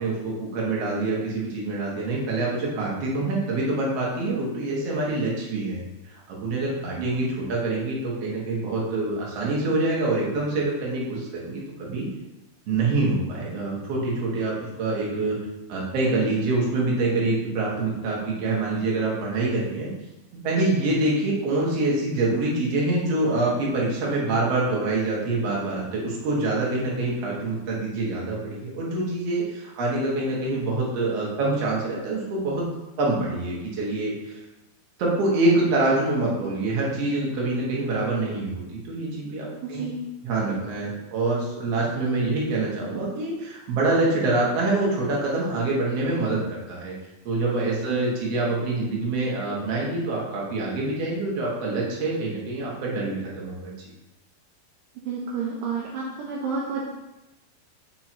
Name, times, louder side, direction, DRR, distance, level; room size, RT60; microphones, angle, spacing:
voice 1, 0.0-5.8 6.3-12.1 12.7-14.5 14.8-15.4 15.7-19.9 20.4-32.7 33.0-34.4 35.0-39.8 40.2-46.9 47.3-53.7, right 2 dB, 55° right, -4 dB, 1.9 m, -25 dB
voice 2, 39.6-40.0 47.9-48.1 55.0-56.8, right 5 dB, 80° right, -3 dB, 2.1 m, -30 dB
5.8 x 3.7 x 4.4 m, 0.99 s
omnidirectional pair, 4.4 m